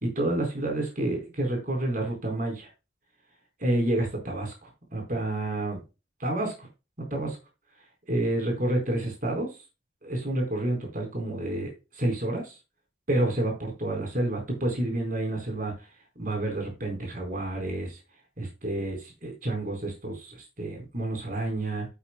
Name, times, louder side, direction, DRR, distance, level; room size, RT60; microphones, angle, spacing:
voice 1, 0.0-2.7 3.6-5.8 6.2-6.7 7.1-7.4 8.1-9.5 10.0-11.7 12.0-12.5 13.1-15.7 16.2-18.0 18.4-21.9, right 1 dB, 45° right, 4.4 m, -29 dB
9.8 x 8.3 x 2.3 m
head